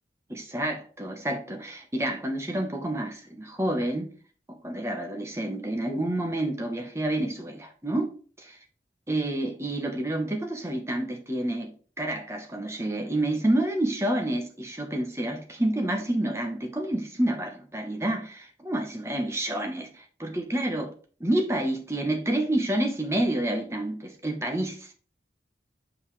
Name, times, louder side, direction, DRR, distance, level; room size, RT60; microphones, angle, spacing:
voice 1, 0.3-4.1 4.5-8.6 9.1-20.9 21.2-24.9, right 1 dB, 15° right, 1.0 m, -29 dB
7.1 x 5.4 x 3.2 m
head